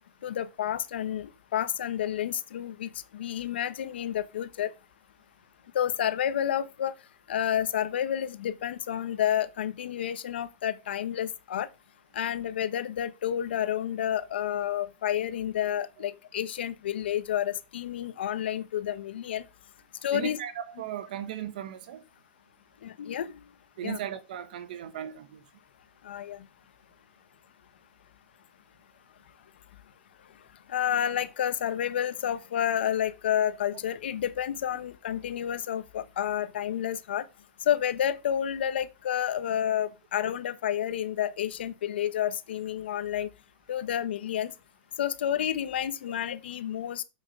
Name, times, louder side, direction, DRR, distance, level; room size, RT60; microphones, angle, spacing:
voice 1, 0.2-4.7 5.7-6.9 7.3-11.7 12.1-19.5 20.0-20.4 22.8-23.5 23.8-24.0 26.0-26.4 30.7-37.2 37.6-43.3 43.7-44.5 45.0-47.0, left 10 dB, 80° left, 1.0 m, -30 dB
voice 2, 20.1-22.0 23.8-25.4, right 10 dB, 55° right, 1.2 m, -37 dB
7.5 x 6.9 x 6.5 m
supercardioid pair, 180°, 6 cm